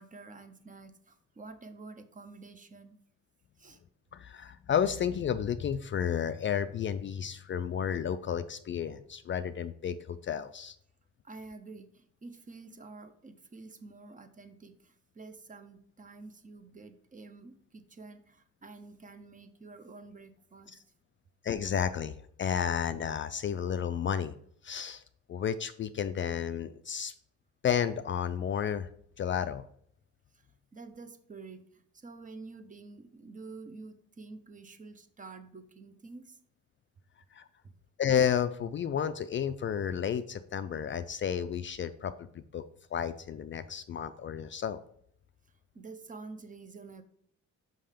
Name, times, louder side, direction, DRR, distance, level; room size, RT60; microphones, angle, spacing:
voice 1, 0.0-3.0 3.6-3.8 11.2-20.8 30.3-36.4 45.7-47.0, right 3 dB, 25° right, 10 dB, 0.8 m, -49 dB
voice 2, 4.1-10.7 21.4-24.3 24.6-25.0 25.3-27.1 27.6-28.9 29.2-29.6 37.3-37.4 38.0-42.6 42.9-44.8, left 8 dB, 40° left, 11 dB, 0.4 m, -32 dB
5.6 x 5.5 x 5.1 m, 0.65 s
cardioid pair, 110°, 31 cm